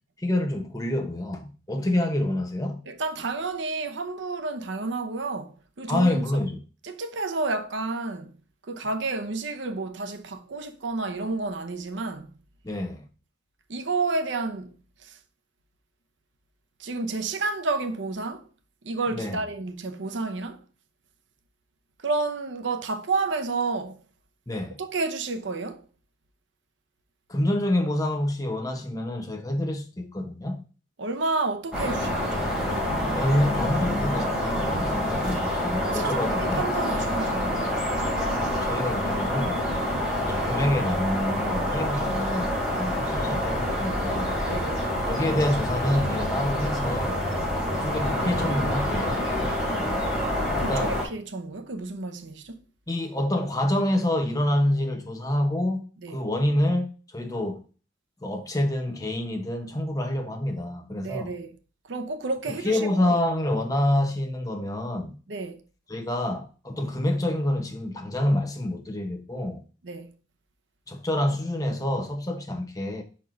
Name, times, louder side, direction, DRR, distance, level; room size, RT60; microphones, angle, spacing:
voice 1, 0.2-2.8 5.9-6.6 12.6-13.1 19.1-19.4 24.5-24.8 27.3-30.6 33.1-36.7 38.4-39.7 40.3-44.3 45.1-47.2 47.7-49.3 50.6-51.0 52.9-57.6 58.2-61.3 62.5-65.2 65.9-69.6 70.9-73.0, left 1 dB, 20° left, 0.9 m, -27 dB
voice 2, 2.9-6.2 6.8-8.4 8.7-12.3 13.7-14.7 15.0-15.2 16.8-18.5 18.8-20.6 22.0-24.0 24.8-25.8 31.0-32.5 35.8-37.7 44.5-44.8 50.6-52.6 56.0-56.2 61.0-61.6 61.9-63.2 65.3-65.6 69.8-70.2, right 3 dB, 75° right, 0.7 m, -30 dB
sound 1, 31.7-51.0, left 1 dB, 5° right, 3.0 m, -27 dB
5.7 x 4.4 x 5.1 m
head